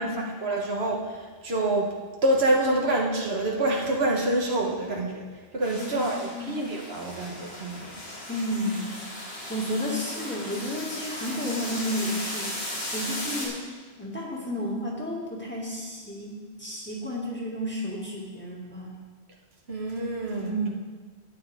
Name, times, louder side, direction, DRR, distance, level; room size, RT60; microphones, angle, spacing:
voice 1, 0.0-1.9 2.2-5.2 5.5-8.0 19.7-20.5, right 1 dB, 80° right, 0 dB, 1.6 m, -27 dB
sound 1, 5.6-13.5, left 1 dB, 70° left, 2.8 m, -36 dB
voice 2, 5.8-6.6 8.3-9.0 9.5-12.5 12.9-13.6 14.0-19.0 20.3-20.7, equal, 10° left, -4 dB, 2.0 m, -32 dB
12.0 x 9.6 x 3.5 m, 1.4 s
omnidirectional pair, 1.1 m